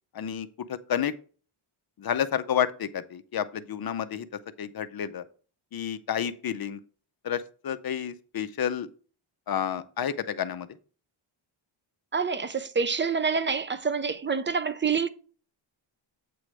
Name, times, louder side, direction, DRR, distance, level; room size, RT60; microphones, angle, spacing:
voice 1, 0.1-1.1 2.0-4.3 4.6-5.2 5.7-6.8 7.2-8.9 9.5-10.7, left 9 dB, 50° left, 0.6 m, -30 dB
voice 2, 12.1-15.1, right 5 dB, 25° right, 0.4 m, -27 dB
8.4 x 3.3 x 6.1 m
wide cardioid pair, 175°, 49 cm